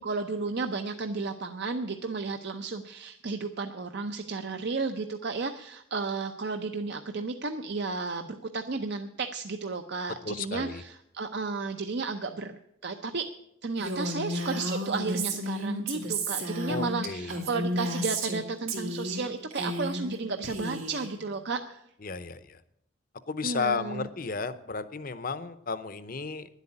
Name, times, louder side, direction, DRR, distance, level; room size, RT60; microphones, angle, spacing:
voice 1, 0.0-13.2 13.6-21.9 23.4-24.1, right 4 dB, 55° right, 7 dB, 0.6 m, -33 dB
voice 2, 10.2-10.8 16.7-17.3 22.0-22.6 23.3-26.5, left 4 dB, 45° left, 13 dB, 0.7 m, -33 dB
Female speech woman speaking, 13.8-18.4 18.7-19.2 19.5-20.1 20.4-21.1, right 1 dB, 90° right, 2.7 m, -32 dB
10.5 x 8.2 x 9.7 m, 0.79 s
head